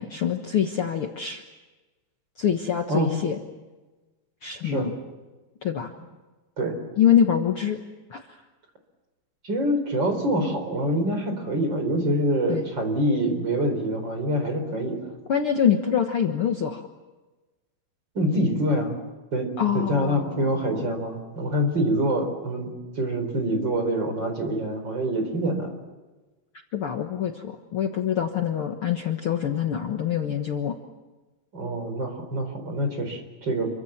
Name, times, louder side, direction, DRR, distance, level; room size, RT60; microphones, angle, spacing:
voice 1, 0.0-1.4 2.4-3.4 4.4-4.9 5.6-5.9 7.0-7.8 8.1-8.3 12.5-12.6 15.3-16.9 19.6-20.9 26.7-30.8, left 8 dB, 70° left, 4 dB, 1.2 m, -25 dB
voice 2, 9.4-15.1 18.1-19.0 19.3-25.7 31.5-33.8, right 1 dB, 30° right, 5 dB, 4.7 m, -26 dB
28.5 x 24.5 x 7.4 m, 1.2 s
omnidirectional pair, 4.6 m